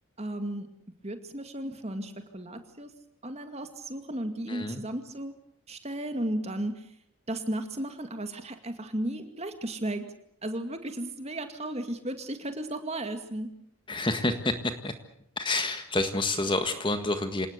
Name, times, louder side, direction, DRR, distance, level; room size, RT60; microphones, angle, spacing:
voice 1, 0.2-0.7 1.0-2.9 3.2-5.3 5.7-6.9 7.3-10.1 10.4-13.5, right 1 dB, 30° right, 7 dB, 2.3 m, -34 dB
voice 2, 4.5-4.8 13.9-14.5 14.8-14.9 15.4-17.5, left 2 dB, 20° left, 8 dB, 1.7 m, -28 dB
27.0 x 19.0 x 8.3 m, 0.72 s
head